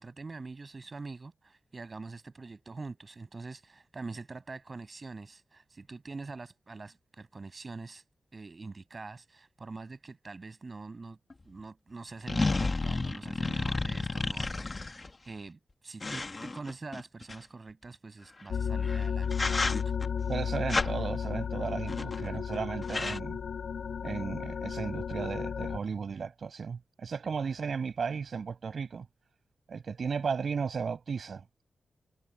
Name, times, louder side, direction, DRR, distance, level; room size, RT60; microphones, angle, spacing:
voice 1, 0.0-8.0 8.3-11.2 11.4-19.5 19.8-19.9, right 3 dB, 40° right, 7.3 m, -44 dB
sound 1, 11.3-11.4 12.3-15.1 16.0-17.3 18.7-19.0 19.3-20.1 20.7-20.9 21.9-22.3 22.5-22.6 22.8-23.2, left 3 dB, 35° left, 2.0 m, -31 dB
sound 2, 18.5-25.8, left 6 dB, 90° left, 1.7 m, -33 dB
voice 2, 20.3-23.4 24.0-29.1 29.7-31.4, right 5 dB, 65° right, 6.6 m, -35 dB
wide cardioid pair, 85°, 0 cm